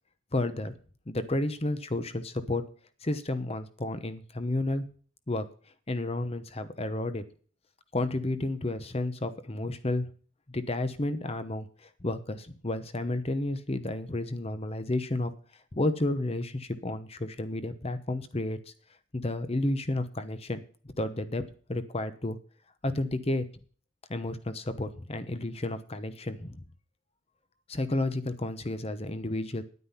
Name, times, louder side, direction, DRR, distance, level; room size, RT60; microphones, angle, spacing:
voice 1, 0.3-0.7 1.1-2.6 3.0-4.9 5.3-5.4 5.9-7.2 7.9-10.1 10.5-15.3 15.7-18.6 19.1-20.6 21.0-21.4 21.7-22.4 22.8-23.5 24.1-26.6 27.7-29.6, left 2 dB, 30° left, 11 dB, 0.9 m, -31 dB
10.0 x 9.4 x 5.6 m, 0.42 s
head